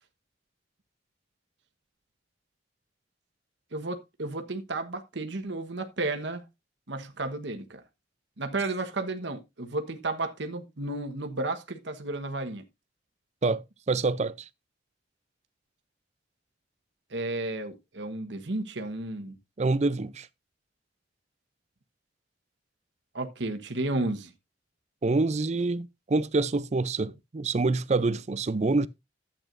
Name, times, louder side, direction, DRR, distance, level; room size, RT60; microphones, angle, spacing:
voice 1, 3.7-6.4 6.9-7.8 8.4-12.6 17.1-19.4 23.1-24.3, right 2 dB, 70° right, 1.2 m, -33 dB
voice 2, 13.4-14.5 19.6-20.3 25.0-28.9, right 3 dB, 35° right, 0.5 m, -26 dB
12.0 x 8.4 x 2.6 m
head